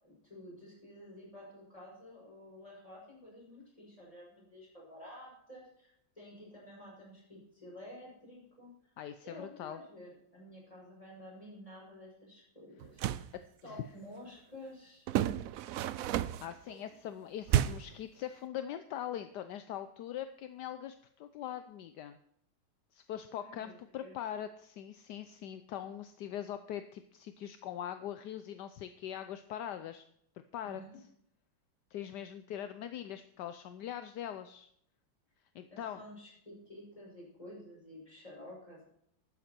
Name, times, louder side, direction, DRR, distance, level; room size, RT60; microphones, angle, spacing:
voice 1, 0.0-8.7 9.2-13.3 13.6-15.1 16.6-16.9 23.4-23.7 24.0-24.1 30.6-31.0 35.7-38.9, left 1 dB, 20° left, -4 dB, 6.0 m, -51 dB
voice 2, 9.0-9.8 13.3-13.4 13.7-13.8 16.4-22.2 22.9-30.0 30.5-30.8 31.9-34.7 35.5-36.0, left 10 dB, 75° left, 10 dB, 1.2 m, -42 dB
sound 1, 12.8-13.3 15.1-16.5 17.5-18.0, right 12 dB, 75° right, 0.7 m, -31 dB
12.5 x 9.3 x 4.4 m, 0.70 s
omnidirectional pair, 2.0 m